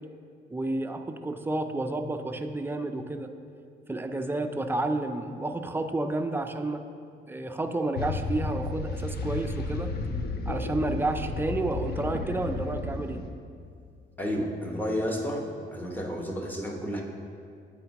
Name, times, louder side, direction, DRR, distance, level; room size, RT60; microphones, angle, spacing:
voice 1, 0.5-3.3 3.9-6.8 7.3-9.9 10.5-13.2, right 2 dB, 10° right, 6 dB, 0.4 m, -30 dB
sound 1, 8.0-13.3, left 3 dB, 55° left, 0.6 m, -33 dB
voice 2, 14.2-17.0, equal, 10° left, 0 dB, 0.9 m, -31 dB
8.9 x 4.3 x 2.9 m, 2.3 s
cardioid pair, 90°, 20 cm